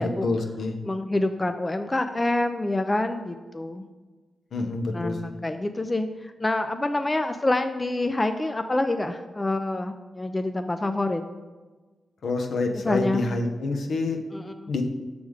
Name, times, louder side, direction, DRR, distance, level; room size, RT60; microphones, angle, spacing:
voice 1, 0.0-0.8 4.5-5.3 12.2-14.2 14.7-14.8, left 3 dB, 75° left, 3 dB, 0.7 m, -27 dB
voice 2, 0.9-3.9 4.9-11.2 12.8-13.3 14.3-14.7, left 2 dB, 25° left, 8 dB, 0.4 m, -27 dB
6.4 x 3.4 x 4.8 m, 1.3 s
cardioid pair, 55°, 0 cm